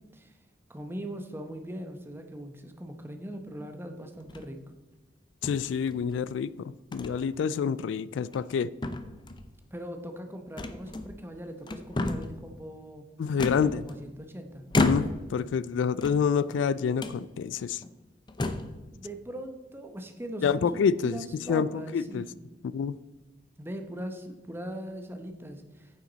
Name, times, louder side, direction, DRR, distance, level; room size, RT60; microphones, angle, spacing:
voice 1, 0.7-4.6 9.7-13.0 13.3-14.6 18.9-22.4 23.6-26.0, right 1 dB, 15° right, 0.9 m, -40 dB
sound 1, 4.2-4.6 5.4-6.2 6.9-7.2 7.6-7.7 8.2-8.6 8.8-9.5 10.6-11.3 11.6-12.4 13.4-14.2 14.7-15.4 15.9-16.6 17.0-17.2 17.8-17.9 18.3-18.8, left 2 dB, 25° left, 0.5 m, -32 dB
voice 2, 5.4-6.5 6.9-8.7 13.2-13.8 14.8-17.8 20.4-21.2 21.5-21.7 21.9-22.2 22.7-23.0, left 6 dB, 85° left, 0.3 m, -27 dB
9.2 x 7.4 x 4.0 m
head